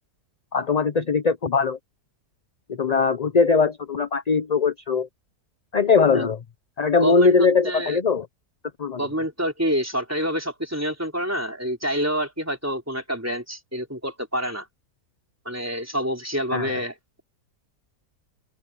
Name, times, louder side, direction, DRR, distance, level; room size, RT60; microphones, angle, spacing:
voice 1, 0.5-1.8 2.8-5.1 5.7-6.4 6.8-8.3 8.8-9.0 16.5-16.8, left 5 dB, 40° left, 0.6 m, -20 dB
voice 2, 7.0-8.0 9.0-14.7 15.5-16.9, equal, 10° right, 3.9 m, -27 dB
open air
omnidirectional pair, 1.6 m